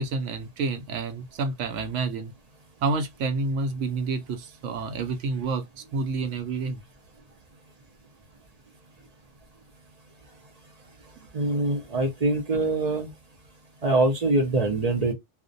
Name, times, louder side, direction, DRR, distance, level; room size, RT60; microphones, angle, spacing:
voice 1, 0.0-2.3 2.8-5.7 5.9-6.8 11.2-11.3, right 4 dB, 80° right, 0.9 m, -29 dB
voice 2, 11.3-13.1 13.8-15.1, right 2 dB, 50° right, 0.4 m, -24 dB
2.4 x 2.1 x 2.5 m
omnidirectional pair, 1.3 m